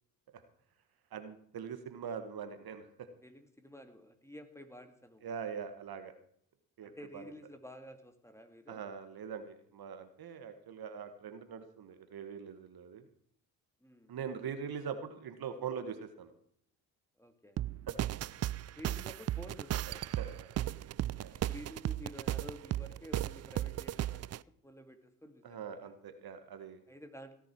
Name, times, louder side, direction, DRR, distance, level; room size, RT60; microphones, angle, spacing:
voice 1, 1.1-2.9 5.2-6.1 6.8-7.3 8.7-13.0 14.1-16.3 17.9-18.0 20.2-20.5 21.2-21.3 25.4-26.8, right 7 dB, 60° right, 9 dB, 1.7 m, -42 dB
voice 2, 3.2-5.3 6.8-8.8 13.8-14.1 17.2-17.6 18.7-20.1 20.7-20.8 21.2-24.4 24.6-25.9 26.9-27.3, equal, 5° left, 7 dB, 2.3 m, -51 dB
sound 1, 17.6-24.4, right 13 dB, 40° right, 0.4 m, -36 dB
18.0 x 10.0 x 4.7 m, 0.67 s
hypercardioid pair, 50°, 42 cm